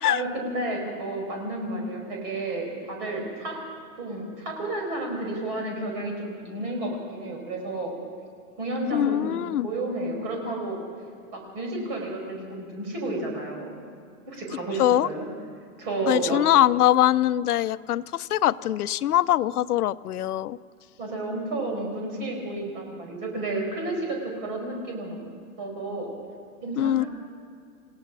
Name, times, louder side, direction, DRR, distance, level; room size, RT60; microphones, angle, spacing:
voice 1, 0.0-3.6 4.0-7.9 8.6-10.8 11.3-13.7 14.3-15.2 15.8-16.4 21.0-25.2 25.6-26.1 26.6-27.1, right 2 dB, 25° right, 1 dB, 4.9 m, -31 dB
voice 2, 8.9-9.7 14.8-15.1 16.1-20.6 26.8-27.0, left 13 dB, 80° left, 16 dB, 0.7 m, -22 dB
28.5 x 17.0 x 6.1 m, 2.3 s
supercardioid pair, 175°, 45 cm